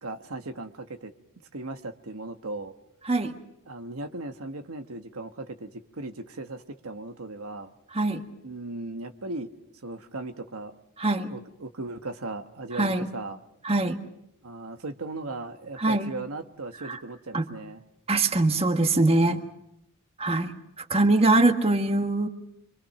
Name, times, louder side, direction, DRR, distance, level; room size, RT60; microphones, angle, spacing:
voice 1, 0.0-1.1 1.5-2.7 3.7-7.7 8.4-9.5 9.8-10.7 11.3-13.4 14.4-17.8 19.2-19.4, right 2 dB, 70° right, 6 dB, 1.2 m, -37 dB
voice 2, 3.0-3.4 7.9-8.2 11.0-11.3 12.7-13.1 13.6-14.0 15.8-16.1 16.8-17.0 17.3-17.4 18.1-19.4 20.2-22.3, right 2 dB, 30° right, 6 dB, 1.5 m, -23 dB
27.0 x 24.0 x 5.8 m, 0.79 s
head